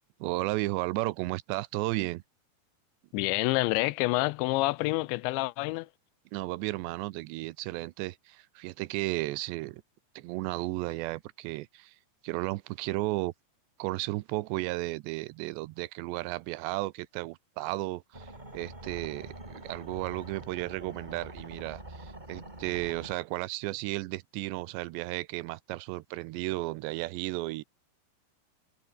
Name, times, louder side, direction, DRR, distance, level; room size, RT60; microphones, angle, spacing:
voice 1, 0.2-2.2 6.3-9.8 10.2-11.9 12.2-13.3 13.8-27.6, right 20 dB, 80° right, 2.8 m, -34 dB
voice 2, 3.1-5.9, left 21 dB, 85° left, 3.0 m, -28 dB
sound 1, 18.1-23.2, right 1 dB, 10° right, 3.9 m, -45 dB
omnidirectional pair, 5.2 m